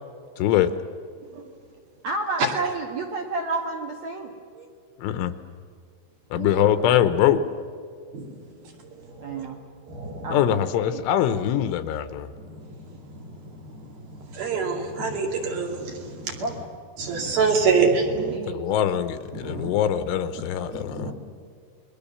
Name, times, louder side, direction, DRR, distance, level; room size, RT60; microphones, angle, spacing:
voice 1, 0.4-0.7 5.0-5.3 6.3-7.4 10.3-12.3 18.5-21.1, left 10 dB, 80° left, 12 dB, 3.2 m, -23 dB
voice 2, 2.0-4.7 6.3-6.9 9.2-9.6 10.2-11.0 16.4-16.5 18.1-18.6 19.5-19.9, right 3 dB, 90° right, 1 dB, 1.5 m, -32 dB
voice 3, 8.1-8.7 9.1-9.5 9.9-10.5 12.4-16.4 17.0-18.4 19.3-19.7 20.7-21.1, right 4 dB, 50° right, 2 dB, 4.0 m, -27 dB
29.5 x 21.5 x 7.0 m, 2.2 s
omnidirectional pair, 5.9 m